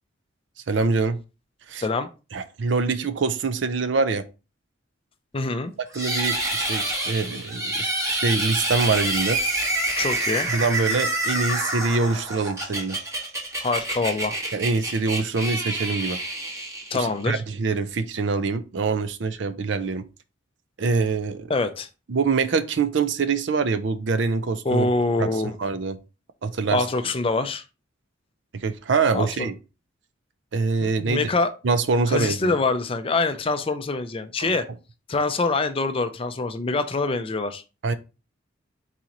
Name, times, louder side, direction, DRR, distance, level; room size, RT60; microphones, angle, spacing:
voice 1, 0.7-1.2 1.7-1.8 2.3-4.2 5.9-9.4 10.5-13.0 14.5-16.2 16.9-20.1 20.8-21.5 22.1-24.9 25.2-25.3 25.6-26.0 26.4-26.8 28.5-29.5 30.5-31.3 31.6-32.6 34.4-34.5 37.8-37.9, right 4 dB, 65° right, 0.5 m, -24 dB
voice 2, 5.3-5.7 10.0-10.5 13.6-14.4 16.9-17.4 21.5-21.9 24.6-25.5 26.7-27.6 29.1-29.5 30.8-31.5 32.1-34.7 35.1-37.6, left 3 dB, 30° left, 0.4 m, -25 dB
sound 1, 5.9-17.3, right 1 dB, 15° right, 1.2 m, -27 dB
4.1 x 3.0 x 3.7 m
head